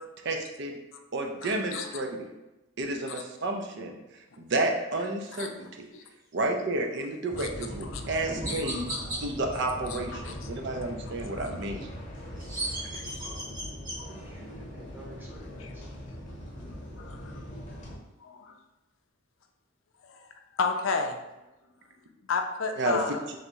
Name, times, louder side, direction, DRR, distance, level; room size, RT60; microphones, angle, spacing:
voice 1, 0.2-0.8 1.1-2.2 2.8-4.0 4.4-5.5 5.8-5.9 6.3-8.9 9.2-11.9 22.8-23.0, right 2 dB, 55° right, 3 dB, 0.5 m, -31 dB
voice 2, 1.4-1.9 3.1-3.2 5.4-6.0 7.4-7.5 7.9-9.2 9.8-10.5 11.1-11.5 12.9-13.7 14.0-14.2 15.5-15.7 16.6-18.6 20.0-20.3 20.6-21.2 22.3-23.2, left 4 dB, 70° left, 5 dB, 0.4 m, -35 dB
sound 1, 7.3-18.0, equal, 35° left, 0.9 m, -41 dB
Chirp tweet, 7.5-7.7 8.4-9.2 12.1-14.0, right 2 dB, 40° right, 1.1 m, -35 dB
sound 2, 8.3-9.9, equal, 75° right, 1.0 m, -41 dB
voice 3, 13.3-13.7 14.1-15.8, equal, 10° right, -4 dB, 0.8 m, -50 dB
3.2 x 2.6 x 4.4 m, 1.0 s
head